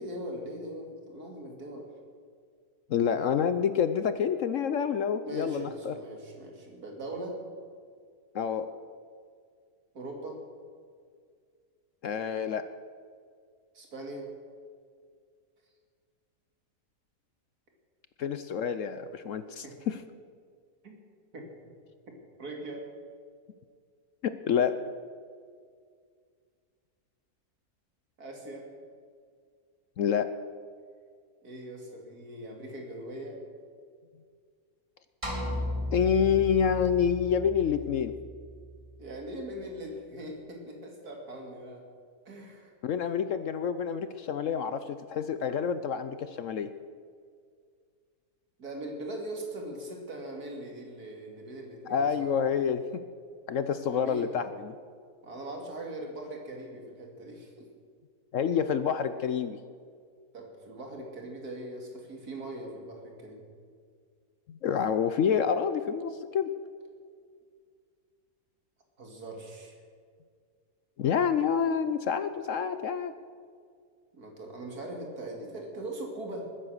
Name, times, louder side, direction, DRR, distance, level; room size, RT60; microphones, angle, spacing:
voice 1, 0.0-1.9 5.2-7.4 9.9-10.4 13.7-14.3 19.6-19.7 20.8-21.0 21.3-21.5 22.4-22.8 28.2-28.7 31.4-33.4 39.0-41.8 42.2-42.7 48.6-52.3 53.9-54.4 55.2-57.7 60.3-63.4 69.0-69.8 74.1-76.5, right 1 dB, 70° right, 1 dB, 3.0 m, -40 dB
voice 2, 2.9-6.0 8.3-8.7 12.0-12.6 18.2-20.0 24.2-24.8 30.0-30.3 35.9-38.1 42.8-46.7 51.9-53.0 53.5-54.8 58.3-59.6 64.5-66.5 71.0-73.1, left 7 dB, 65° left, 11 dB, 0.9 m, -28 dB
sound 1, 35.2-39.6, equal, 20° right, 2.7 m, -36 dB
20.5 x 9.8 x 6.5 m, 2.1 s
omnidirectional pair, 1.7 m